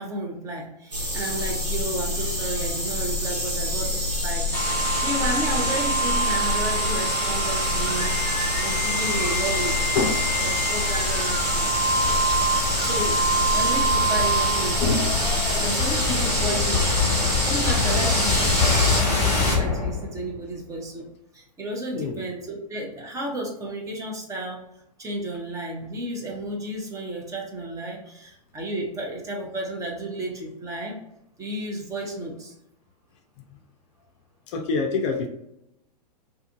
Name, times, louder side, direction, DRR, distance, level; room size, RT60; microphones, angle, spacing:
voice 1, 0.0-4.5 5.0-8.2 8.6-10.1 10.4-11.8 12.8-15.1 15.5-16.9 17.2-21.1 21.3-24.6 25.0-31.0 31.4-32.5, right 1 dB, 15° right, -1 dB, 0.6 m, -32 dB
sound 1, 0.9-19.0, left 1 dB, 75° right, 1.4 m, -27 dB
sound 2, 4.5-20.4, left 1 dB, 10° left, 1.2 m, -24 dB
voice 2, 14.8-15.1 16.1-16.3 21.9-22.2 34.5-35.3, left 4 dB, 45° left, 4 dB, 0.5 m, -26 dB
2.6 x 2.5 x 2.5 m, 0.82 s
figure-of-eight pair, 105°, 21 cm